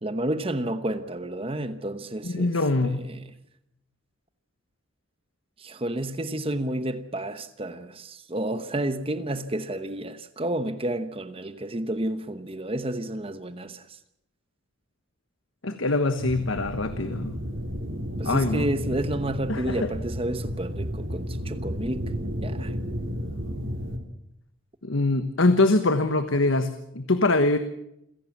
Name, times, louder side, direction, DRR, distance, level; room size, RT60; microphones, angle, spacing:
voice 1, 0.0-2.6 2.8-3.3 5.6-13.9 18.2-22.1 22.4-22.7, right 1 dB, 30° right, 1.0 m, -31 dB
voice 2, 2.2-3.1 15.6-17.4 18.2-18.7 19.5-19.9 24.8-27.6, left 2 dB, 90° left, 1.3 m, -23 dB
sound 1, 16.2-24.0, equal, 80° right, 3.1 m, -32 dB
28.0 x 16.5 x 7.3 m
head